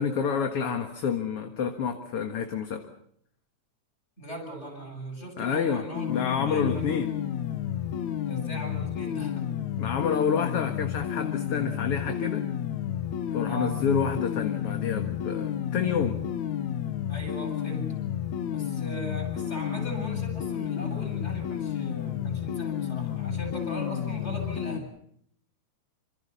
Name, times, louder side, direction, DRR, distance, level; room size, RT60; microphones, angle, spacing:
voice 1, 0.0-2.9 5.4-7.1 9.8-12.5 13.3-16.2, left 6 dB, 50° left, 6 dB, 2.3 m, -28 dB
voice 2, 4.2-6.1 6.5-6.9 8.3-9.5 13.4-13.8 17.1-17.9 18.5-24.9, right 1 dB, 20° left, 4 dB, 8.0 m, -39 dB
sound 1, 5.9-24.8, left 10 dB, 70° left, 2.6 m, -31 dB
27.5 x 27.0 x 5.6 m, 0.68 s
omnidirectional pair, 3.7 m